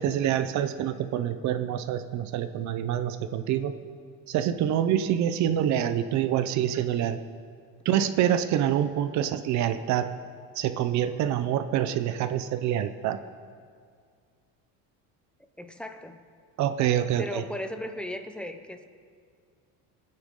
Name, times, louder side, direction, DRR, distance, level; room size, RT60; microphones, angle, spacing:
voice 1, 0.0-3.7 4.3-7.2 7.8-10.1 10.5-13.2 16.6-17.4, right 10 dB, 50° right, 10 dB, 0.7 m, -26 dB
voice 2, 15.6-16.3 17.2-18.9, equal, 5° left, 6 dB, 0.7 m, -36 dB
25.0 x 9.4 x 3.7 m, 2.1 s
cardioid pair, 155°, 35 cm